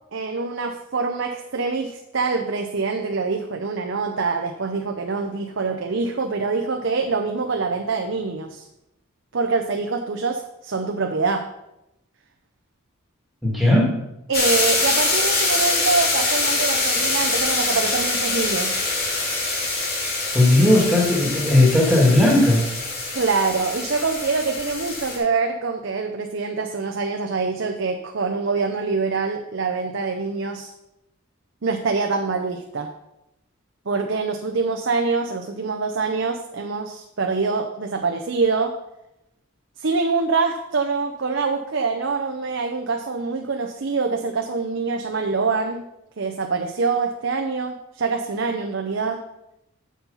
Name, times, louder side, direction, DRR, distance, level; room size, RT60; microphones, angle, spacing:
voice 1, 0.1-8.7 9.3-11.5 14.3-18.8 23.1-30.7 31.6-32.9 33.9-38.8 39.8-45.9 46.2-49.2, right 4 dB, 60° right, 4 dB, 0.7 m, -25 dB
voice 2, 13.4-13.9 20.3-22.7, left 1 dB, ahead, -3 dB, 2.0 m, -16 dB
sound 1, 14.3-25.2, left 2 dB, 50° left, 2.6 m, -24 dB
7.2 x 7.1 x 5.5 m, 0.88 s
head